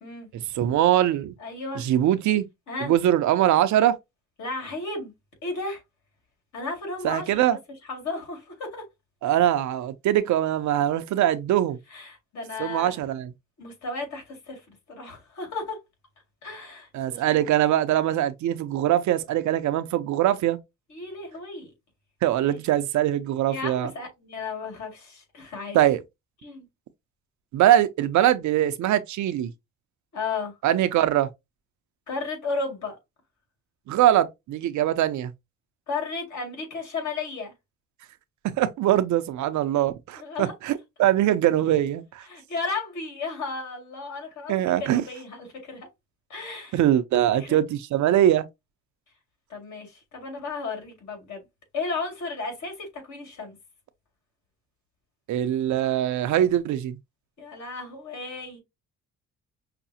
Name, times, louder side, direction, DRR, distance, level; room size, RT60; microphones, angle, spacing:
voice 1, 0.3-1.3 1.7-2.5 2.8-4.0 7.0-7.6 9.2-11.8 12.6-13.3 16.9-20.6 22.2-23.9 25.7-26.0 27.5-29.5 30.6-31.3 33.9-35.3 38.6-42.2 44.5-45.0 46.7-48.5 55.3-57.0, right 12 dB, 70° right, 0.6 m, -22 dB
voice 2, 1.4-1.9 2.7-2.9 4.4-5.1 5.4-5.8 6.5-7.6 7.9-8.9 11.9-13.0 13.6-15.8 16.4-17.4 20.9-21.7 22.4-22.6 23.5-25.8 26.4-26.6 30.1-30.5 32.1-33.0 35.9-37.5 40.2-40.5 42.3-45.9 46.3-46.8 47.4-47.6 49.5-51.4 51.7-53.6 57.4-58.6, left 3 dB, 70° left, 2.1 m, -34 dB
5.7 x 2.0 x 2.7 m
cardioid pair, 90°, 30 cm